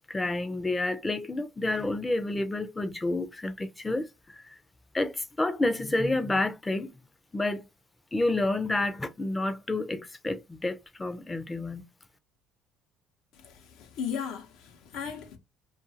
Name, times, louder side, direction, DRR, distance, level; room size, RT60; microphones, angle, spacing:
voice 1, 0.1-4.1 4.9-6.9 7.3-7.7 8.1-11.8, left 2 dB, 15° left, 0.5 m, -29 dB
voice 2, 13.4-15.4, left 7 dB, 75° left, 0.8 m, -36 dB
2.5 x 2.4 x 2.7 m
cardioid pair, 100°, 0 cm